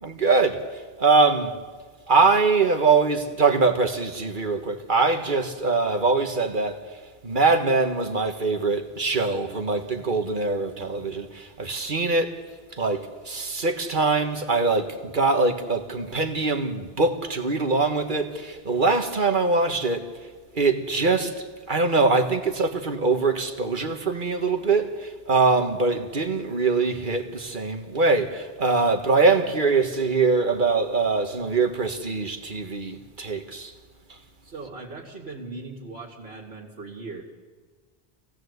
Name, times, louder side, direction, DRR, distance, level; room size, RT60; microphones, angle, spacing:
voice 1, 0.0-1.5 2.1-12.4 12.7-20.1 20.5-33.7 34.1-34.2, right 3 dB, 50° right, 1.7 m, -23 dB
voice 2, 34.4-37.2, right 3 dB, 85° right, 2.7 m, -39 dB
25.5 x 17.0 x 8.1 m
omnidirectional pair, 1.0 m